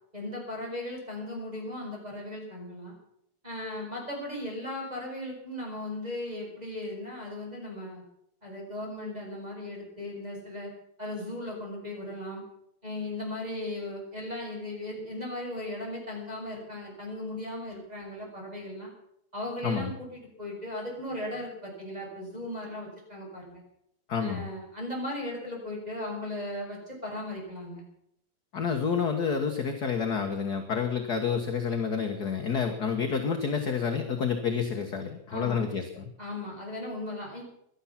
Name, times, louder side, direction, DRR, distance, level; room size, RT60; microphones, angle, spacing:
voice 1, 0.1-2.9 3.4-8.0 8.4-10.7 11.0-12.4 12.8-18.9 19.3-23.6 24.2-27.8 35.3-35.6 36.2-37.4, left 1 dB, 10° right, -1 dB, 6.1 m, -37 dB
voice 2, 24.1-24.5 28.5-36.1, left 6 dB, 45° left, 4 dB, 1.4 m, -29 dB
17.5 x 12.5 x 5.9 m, 0.74 s
omnidirectional pair, 3.3 m